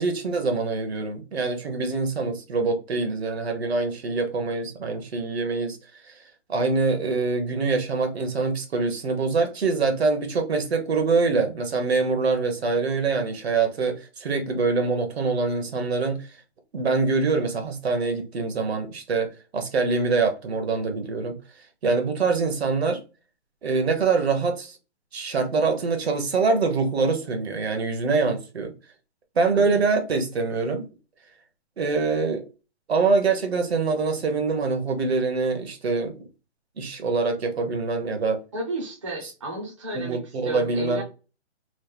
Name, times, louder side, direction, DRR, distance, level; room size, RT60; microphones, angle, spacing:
voice 1, 0.0-5.8 6.0-6.1 6.5-16.4 16.7-21.4 21.8-23.0 23.6-24.8 25.1-28.7 29.4-30.8 31.8-32.5 32.9-36.1 36.8-38.4 39.9-41.0, right 4 dB, 65° right, 0.9 m, -24 dB
voice 2, 38.5-41.0, right 1 dB, 30° right, 0.6 m, -32 dB
3.1 x 2.1 x 3.3 m
hypercardioid pair, 175°, 34 cm